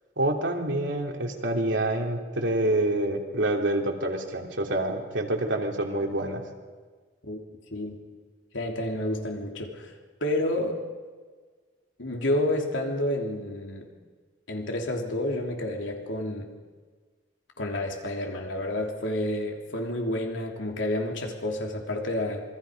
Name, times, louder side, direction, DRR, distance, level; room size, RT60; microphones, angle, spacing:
voice 1, 0.2-6.4, right 1 dB, 80° right, 1 dB, 3.0 m, -27 dB
voice 2, 8.5-9.9 10.2-10.8 12.0-13.9 14.5-16.5 17.6-22.4, left 1 dB, 80° left, 1 dB, 3.3 m, -29 dB
27.0 x 22.5 x 5.3 m, 1.5 s
head